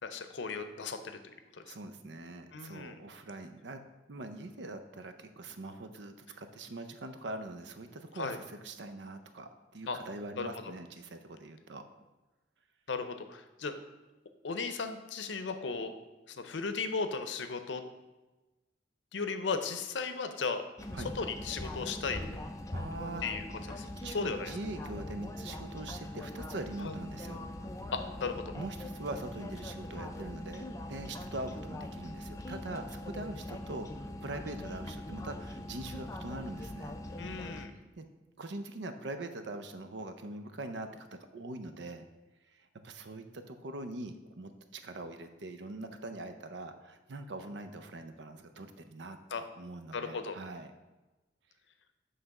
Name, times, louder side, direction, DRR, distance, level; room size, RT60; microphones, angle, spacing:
voice 1, 0.0-1.7 2.5-3.0 8.1-8.4 9.9-10.0 10.4-10.7 12.9-13.7 14.4-15.9 16.3-17.8 19.1-20.6 21.2-22.2 23.2-23.4 23.8-23.9 24.1-24.5 26.8-26.9 27.9-28.5 37.2-37.7 49.3-49.4 49.9-50.4, left 4 dB, 80° left, 8 dB, 0.6 m, -36 dB
voice 2, 1.7-3.8 4.1-11.8 20.9-21.1 22.7-23.2 23.7-27.5 28.5-37.0 38.0-38.1 38.4-42.1 42.5-49.2 49.5-50.7, right 2 dB, 70° right, 8 dB, 0.6 m, -43 dB
sound 1, 20.8-37.7, left 1 dB, 20° left, 0.4 m, -42 dB
7.6 x 3.3 x 5.9 m, 1.1 s
head